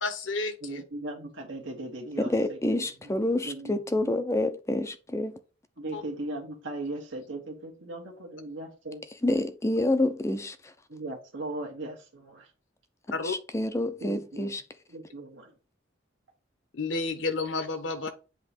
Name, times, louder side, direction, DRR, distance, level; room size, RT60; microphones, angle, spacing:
voice 1, 0.0-0.8 5.9-6.0 13.1-13.3 16.7-18.1, left 3 dB, 70° left, 1.1 m, -31 dB
voice 2, 0.6-2.8 3.4-4.1 5.8-9.0 10.9-12.5 14.0-14.5 14.9-15.5, right 2 dB, 70° right, 1.4 m, -38 dB
voice 3, 2.2-5.4 9.2-10.7 13.2-14.6, left 1 dB, 15° left, 0.5 m, -28 dB
7.9 x 3.0 x 5.0 m
head